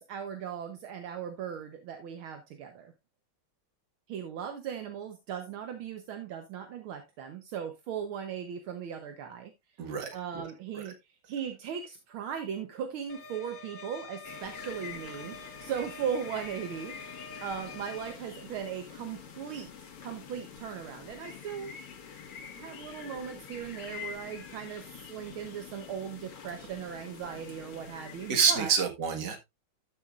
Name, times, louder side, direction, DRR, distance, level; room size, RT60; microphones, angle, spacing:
voice 1, 0.0-2.9 4.1-9.5 10.1-11.0 11.3-19.7 20.0-21.7 22.6-28.7, right 8 dB, 75° right, 1.8 m, -38 dB
voice 2, 9.8-10.4 10.8-10.9 28.3-29.4, right 6 dB, 55° right, 2.3 m, -28 dB
sound 1, 13.1-18.1, left 3 dB, 60° left, 2.0 m, -46 dB
sound 2, 14.2-28.6, left 6 dB, 85° left, 2.5 m, -46 dB
12.5 x 7.4 x 2.4 m
omnidirectional pair, 2.3 m